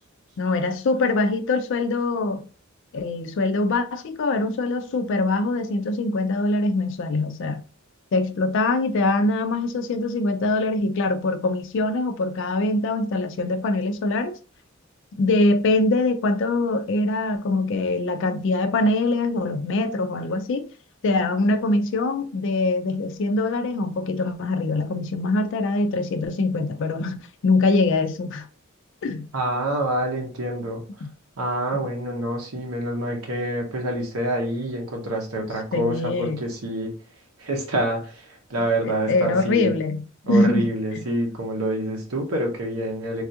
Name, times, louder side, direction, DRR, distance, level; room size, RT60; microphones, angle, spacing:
voice 1, 0.4-2.5 2.9-7.6 8.1-14.3 15.2-20.7 21.0-28.5 29.0-29.3 31.0-31.1 31.7-31.9 35.7-36.4 38.8-40.7 41.0-41.1, left 2 dB, 60° left, 0.4 m, -23 dB
voice 2, 29.3-30.8 31.4-36.9 37.4-39.7 40.3-43.2, right 1 dB, 85° right, 0.8 m, -27 dB
3.3 x 2.3 x 2.7 m
head